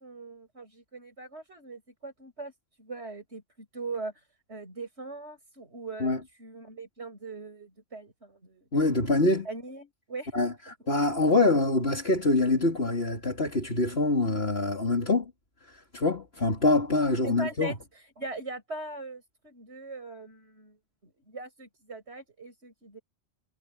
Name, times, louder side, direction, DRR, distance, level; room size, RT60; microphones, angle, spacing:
voice 1, 0.0-2.5 2.8-4.1 4.5-6.1 6.4-8.6 9.2-10.7 17.2-17.8 18.2-20.8 21.0-23.0, right 3 dB, 65° right, 6.6 m, -41 dB
voice 2, 8.7-9.5 10.3-10.5 10.9-15.3 15.7-17.7, left 2 dB, 60° left, 3.7 m, -25 dB
omnidirectional pair, 1.2 m